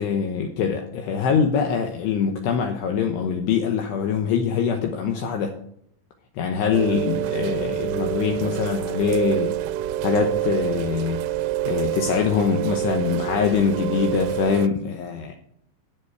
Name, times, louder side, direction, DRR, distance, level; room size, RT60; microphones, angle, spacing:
voice 1, 0.0-5.6 6.4-9.5 10.0-11.2 11.7-15.3, left 7 dB, 80° left, 4 dB, 2.5 m, -23 dB
Rain, 6.7-14.7, right 13 dB, 90° right, 3.3 m, -27 dB
12.5 x 8.3 x 4.6 m, 0.69 s
omnidirectional pair, 5.9 m